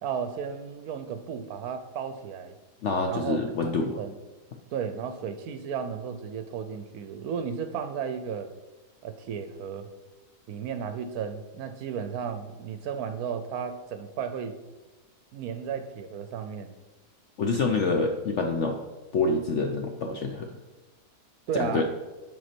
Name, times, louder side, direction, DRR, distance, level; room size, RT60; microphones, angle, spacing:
voice 1, 0.0-2.6 3.1-4.2 4.7-8.5 9.0-9.9 10.5-14.5 15.3-16.7 21.5-21.8, right 7 dB, 70° right, 8 dB, 1.0 m, -34 dB
voice 2, 2.8-4.0 17.4-18.8 19.1-20.5 21.5-21.8, left 3 dB, 65° left, 4 dB, 0.7 m, -26 dB
7.8 x 5.4 x 4.3 m, 1.2 s
omnidirectional pair, 1.8 m